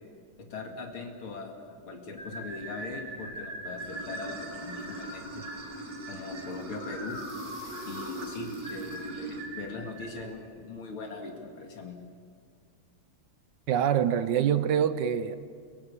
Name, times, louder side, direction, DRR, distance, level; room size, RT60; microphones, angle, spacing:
voice 1, 0.4-5.4 6.1-7.1 7.9-12.0, left 3 dB, 85° left, 3 dB, 3.1 m, -40 dB
sound 1, 2.2-10.2, right 1 dB, 40° left, 6.5 m, -42 dB
Water / Sink (filling or washing), 3.8-9.5, right 2 dB, 45° right, 3.4 m, -40 dB
sound 2, 4.7-5.4 6.3-9.1, equal, 10° left, 5.4 m, -53 dB
voice 2, 13.7-15.4, right 9 dB, 65° right, 12 dB, 1.3 m, -25 dB
30.0 x 17.0 x 6.9 m, 2.2 s
omnidirectional pair, 2.3 m